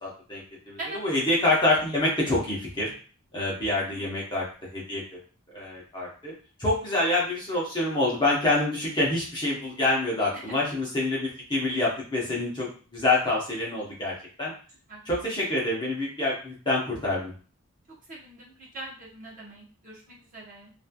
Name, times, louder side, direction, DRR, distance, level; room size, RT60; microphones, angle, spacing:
voice 1, 0.0-2.9 3.3-4.5 4.7-5.2 5.5-6.3 6.6-14.5 15.0-17.3, left 2 dB, 20° left, -5 dB, 0.8 m, -26 dB
voice 2, 18.1-20.7, right 2 dB, 40° right, -5 dB, 0.9 m, -41 dB
3.0 x 2.4 x 2.2 m, 0.39 s
head